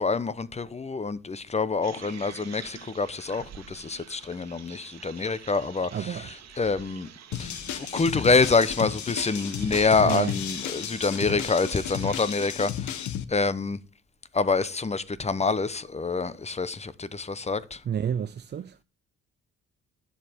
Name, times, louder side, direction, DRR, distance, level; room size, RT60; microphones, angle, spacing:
voice 1, 0.0-7.1 7.4-13.8 14.3-17.8, left 4 dB, 20° left, 0.8 m, -26 dB
sound 1, 1.8-12.5, right 9 dB, 60° right, 1.6 m, -46 dB
voice 2, 5.9-6.3 6.6-6.7 10.0-10.3 17.9-18.8, right 8 dB, 35° right, 0.5 m, -30 dB
sound 2, 7.3-13.2, left 10 dB, 70° left, 1.2 m, -33 dB
10.0 x 7.5 x 5.1 m
cardioid pair, 90°, 30 cm